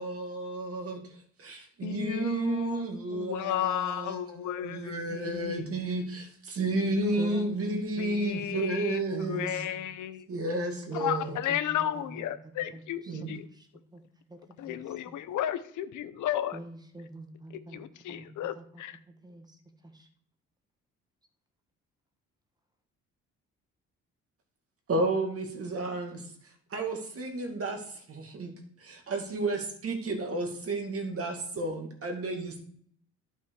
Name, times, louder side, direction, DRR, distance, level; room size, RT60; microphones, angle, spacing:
voice 1, 0.0-9.6 10.3-11.4 13.1-13.4 24.9-26.2 26.7-28.5 28.8-32.6, right 2 dB, 50° right, 3 dB, 2.2 m, -32 dB
voice 2, 1.8-2.8 3.1-5.7 6.9-7.4 8.0-10.2 10.9-13.0 13.3-13.4 14.6-16.6 17.7-19.0, left 11 dB, 80° left, 12 dB, 0.8 m, -33 dB
voice 3, 7.2-8.7 9.1-10.0 10.9-12.2 12.7-14.0 14.3-15.2 16.5-19.6 19.8-20.1, right 1 dB, 15° right, 6 dB, 1.5 m, -44 dB
11.0 x 5.9 x 4.8 m, 0.63 s
cardioid pair, 90°, 30 cm